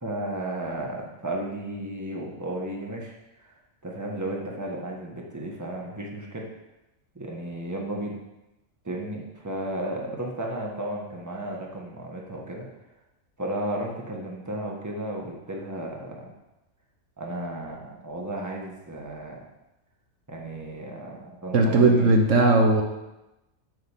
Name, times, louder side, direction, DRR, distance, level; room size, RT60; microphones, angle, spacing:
voice 1, 0.0-3.1 3.4-3.5 3.8-6.5 7.1-8.2 8.8-12.7 13.4-16.3 17.2-19.5 20.3-22.2, right 1 dB, 15° right, -1 dB, 1.4 m, -34 dB
voice 2, 21.5-22.8, right 2 dB, 65° right, 3 dB, 1.2 m, -18 dB
7.6 x 5.3 x 7.3 m, 0.96 s
omnidirectional pair, 1.4 m